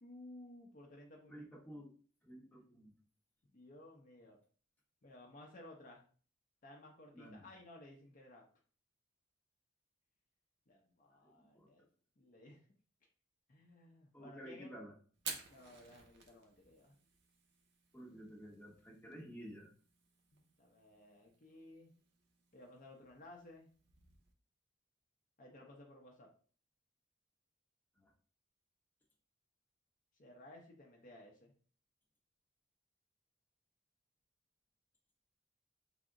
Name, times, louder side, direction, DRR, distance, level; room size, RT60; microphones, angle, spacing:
voice 1, 0.0-1.5 3.5-4.4 5.0-6.0 6.6-8.4 10.7-11.9 12.2-12.6 13.5-14.7 15.5-17.0 20.3-21.9 22.5-23.7 25.4-26.3 30.2-31.5, left 1 dB, 45° left, 0 dB, 0.6 m, -57 dB
voice 2, 1.3-1.9 2.2-2.9 7.1-7.5 11.2-11.7 14.1-14.9 17.9-19.7 28.0-28.1, equal, 10° left, -2 dB, 0.8 m, -52 dB
Fire, 15.1-24.3, right 5 dB, 60° right, 0.6 m, -54 dB
3.5 x 2.0 x 3.6 m, 0.42 s
head